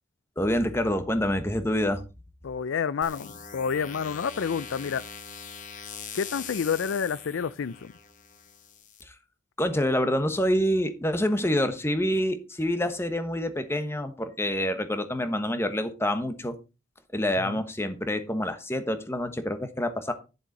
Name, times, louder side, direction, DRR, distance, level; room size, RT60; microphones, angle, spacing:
voice 1, 0.4-2.0 9.6-16.5 17.1-20.1, equal, 15° left, 1.2 m, -27 dB
voice 2, 2.4-5.0 6.1-7.9 17.4-17.6, left 6 dB, 80° left, 0.4 m, -29 dB
sound 1, 3.0-9.0, left 6 dB, 40° left, 1.3 m, -42 dB
11.0 x 7.2 x 4.1 m
head